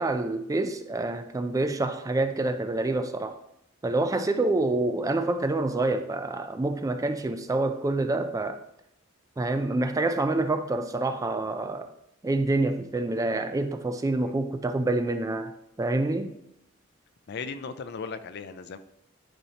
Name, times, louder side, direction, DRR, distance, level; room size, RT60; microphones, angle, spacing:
voice 1, 0.0-3.4 3.8-8.6 9.4-11.9 12.2-16.4, right 2 dB, 15° right, 0.3 m, -27 dB
voice 2, 17.3-18.8, left 5 dB, 55° left, 0.4 m, -37 dB
10.0 x 4.2 x 2.9 m
head